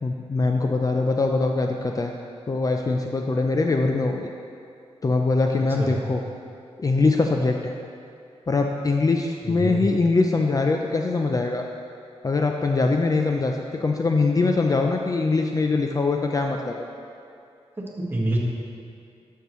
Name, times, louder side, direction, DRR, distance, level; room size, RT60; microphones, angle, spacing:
voice 1, 0.0-2.1 2.5-4.3 5.0-6.2 6.8-7.8 8.5-11.7 12.2-16.9, left 3 dB, 35° left, 2 dB, 0.4 m, -22 dB
voice 2, 9.4-9.8 17.8-18.4, right 1 dB, 20° right, -4 dB, 1.5 m, -27 dB
12.0 x 6.6 x 3.1 m, 2.5 s
wide cardioid pair, 120°, 11 cm